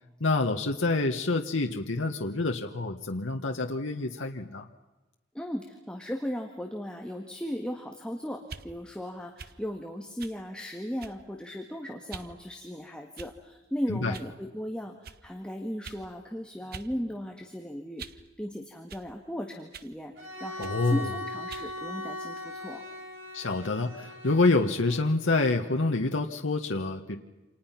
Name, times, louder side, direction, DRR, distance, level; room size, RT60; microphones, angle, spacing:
voice 1, 0.2-4.7 13.9-14.1 20.6-21.1 23.3-27.2, left 3 dB, 85° left, 3 dB, 1.4 m, -27 dB
voice 2, 5.3-22.8, equal, 5° left, 2 dB, 1.8 m, -37 dB
sound 1, 8.4-8.7 9.4-9.6 10.2-10.4 11.0-11.3 12.1-12.3 13.1-13.5 14.1-14.3 15.0-15.2 15.8-16.0 16.7-16.9 17.3-18.3 18.9-19.1 19.7-20.0 20.6-20.8 21.5-21.7, right 5 dB, 50° right, 1.1 m, -45 dB
Bowed string instrument, 20.1-25.1, left 1 dB, 80° right, 7.1 m, -39 dB
29.0 x 27.0 x 5.9 m, 1.1 s
head